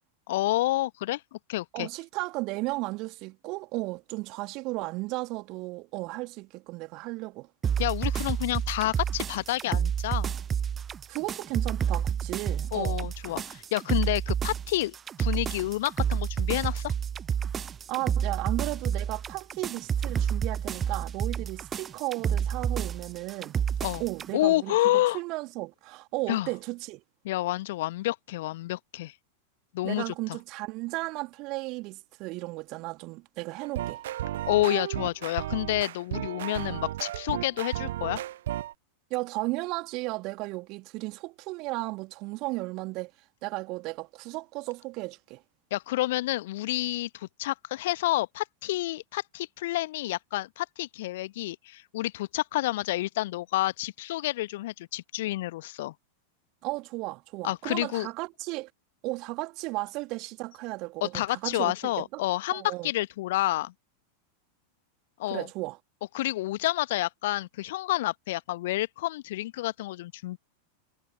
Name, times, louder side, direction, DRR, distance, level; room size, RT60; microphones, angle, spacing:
voice 1, 0.3-1.2 1.5-1.9 7.8-10.3 12.7-16.9 23.8-24.0 24.3-25.2 26.3-26.5 27.2-29.1 29.7-30.1 34.5-38.2 45.7-55.9 57.4-58.1 61.0-63.7 65.2-65.5 66.1-70.4, left 16 dB, 55° left, 1.1 m, -29 dB
voice 2, 1.7-7.5 11.1-13.0 17.9-23.6 24.0-27.0 29.8-34.0 39.1-43.1 43.4-45.4 56.6-58.7 59.0-62.2 62.5-62.9 65.3-65.8, right 23 dB, 40° right, 2.4 m, -35 dB
sound 1, 7.6-24.3, right 8 dB, 20° right, 0.6 m, -29 dB
sound 2, 33.6-38.7, right 13 dB, 60° right, 0.3 m, -34 dB
figure-of-eight pair, 90°, 0 cm